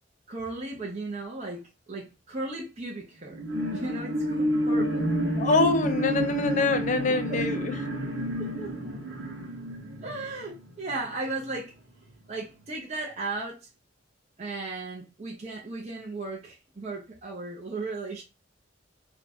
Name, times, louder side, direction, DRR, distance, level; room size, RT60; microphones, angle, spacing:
voice 1, 0.3-5.1 7.3-7.4 8.4-9.0 10.0-11.8 12.3-13.7 14.4-18.2, right 3 dB, 35° right, 0.7 m, -36 dB
sound 1, 3.3-11.1 11.5-11.6, equal, 70° right, 1.1 m, -29 dB
voice 2, 5.4-7.8, left 3 dB, 40° left, 0.5 m, -25 dB
2.7 x 2.3 x 4.2 m
head